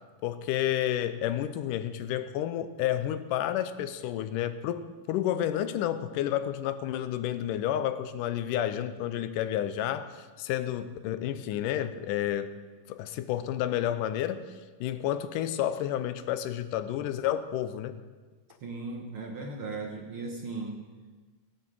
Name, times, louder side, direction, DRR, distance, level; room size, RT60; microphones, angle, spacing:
voice 1, 0.2-12.6 12.9-14.4 14.8-17.9, left 11 dB, 80° left, 11 dB, 2.2 m, -30 dB
voice 2, 18.6-20.9, right 3 dB, 55° right, 1 dB, 1.6 m, -37 dB
17.5 x 8.0 x 7.7 m, 1.4 s
omnidirectional pair, 3.9 m